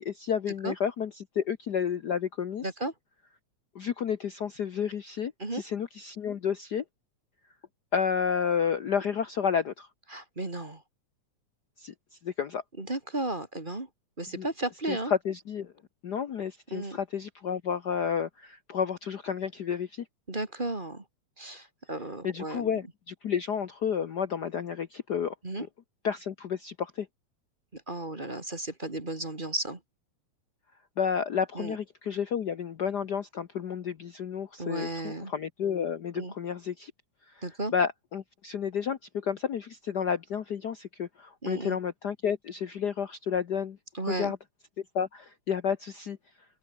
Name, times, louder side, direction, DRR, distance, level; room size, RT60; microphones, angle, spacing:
voice 1, 0.0-2.6 3.7-6.8 7.9-9.9 11.8-11.9 12.2-12.6 14.3-14.5 14.9-15.7 16.0-20.0 22.2-25.7 26.0-27.1 31.0-36.9 37.3-37.4 37.7-43.8 44.0-44.4 44.9-46.2, left 7 dB, 80° left, 0.9 m, -31 dB
voice 2, 2.6-2.9 5.4-5.6 10.1-10.8 12.8-13.9 14.2-15.1 16.7-17.0 20.3-21.0 21.4-22.7 25.4-25.7 27.7-29.8 31.6-31.8 34.6-35.3 36.2-36.3 37.4-37.7 41.4-41.8 43.9-44.3, right 2 dB, 20° right, 1.9 m, -34 dB
open air
omnidirectional pair, 3.5 m